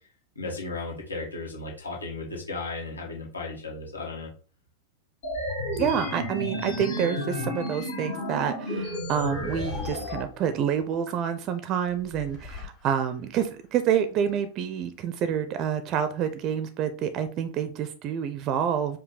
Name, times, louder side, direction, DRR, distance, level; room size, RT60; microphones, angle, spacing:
voice 1, 0.3-4.3, left 3 dB, 80° left, -2 dB, 1.4 m, -35 dB
sound 1, 5.2-10.2, left 1 dB, 55° left, 1.2 m, -32 dB
voice 2, 5.8-19.0, right 8 dB, 35° right, 10 dB, 0.4 m, -28 dB
sound 2, 8.8-10.8 11.9-13.4, left 3 dB, 30° left, 1.8 m, -41 dB
5.1 x 2.2 x 3.9 m, 0.38 s
figure-of-eight pair, 90°, 0 cm